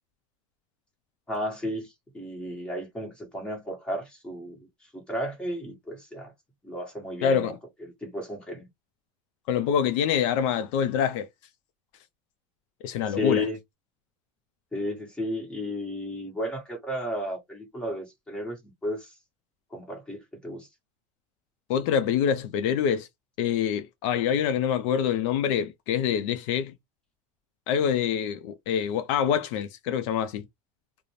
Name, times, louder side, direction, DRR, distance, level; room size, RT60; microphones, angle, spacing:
voice 1, 1.3-4.7 4.9-6.3 6.6-7.5 7.8-8.7 13.1-13.6 14.7-19.1 19.7-20.7, left 1 dB, 5° left, 1.1 m, -33 dB
voice 2, 7.2-7.6 9.5-11.3 12.8-13.4 21.7-23.1 23.4-26.7 27.7-30.4, left 8 dB, 70° left, 0.5 m, -25 dB
2.5 x 2.0 x 3.0 m
supercardioid pair, 130°, 17 cm